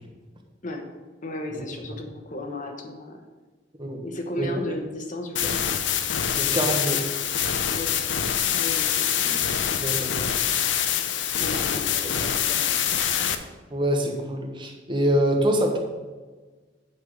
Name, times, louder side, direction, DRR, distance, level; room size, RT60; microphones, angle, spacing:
voice 1, 1.2-3.2 4.0-5.5 7.7-8.0 8.5-9.8 11.4-12.7, left 2 dB, 45° left, 3 dB, 1.1 m, -35 dB
sound 1, 5.4-13.4, left 9 dB, 80° left, 0.7 m, -25 dB
voice 2, 6.3-7.0 9.8-10.2 11.7-12.1 13.7-15.8, right 1 dB, 25° right, 2 dB, 1.4 m, -25 dB
8.7 x 5.6 x 6.5 m, 1.3 s
head